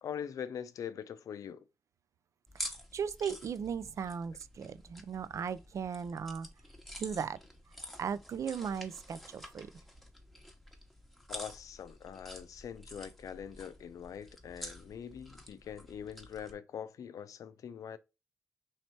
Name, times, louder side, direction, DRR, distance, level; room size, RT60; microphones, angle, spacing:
voice 1, 0.0-1.7 11.3-18.0, left 8 dB, 80° left, 0.4 m, -43 dB
sound 1, 2.5-16.5, left 1 dB, ahead, 0.9 m, -49 dB
voice 2, 2.9-6.5 7.0-7.4 8.0-9.7, right 7 dB, 65° right, 0.3 m, -37 dB
3.2 x 2.8 x 4.4 m
cardioid pair, 75°, 6 cm